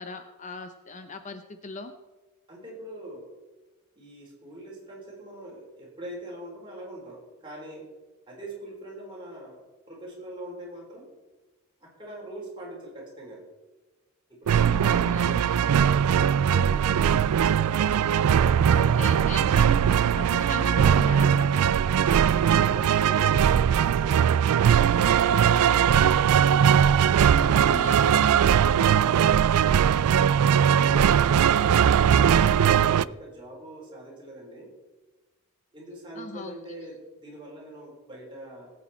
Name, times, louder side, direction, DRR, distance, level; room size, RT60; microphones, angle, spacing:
voice 1, 0.0-1.9 14.6-15.6 16.5-16.8 18.3-21.7 27.5-28.5 36.1-36.5, left 3 dB, 35° left, 8 dB, 0.7 m, -39 dB
voice 2, 2.5-3.3 3.9-7.9 8.3-11.1 11.8-13.4 14.3-15.1 15.9-17.1 30.6-34.7 35.7-38.7, right 1 dB, 20° right, -3 dB, 4.1 m, -42 dB
sound 1, 14.5-33.0, right 8 dB, 90° right, 0.3 m, -20 dB
19.0 x 8.6 x 4.3 m, 1.2 s
head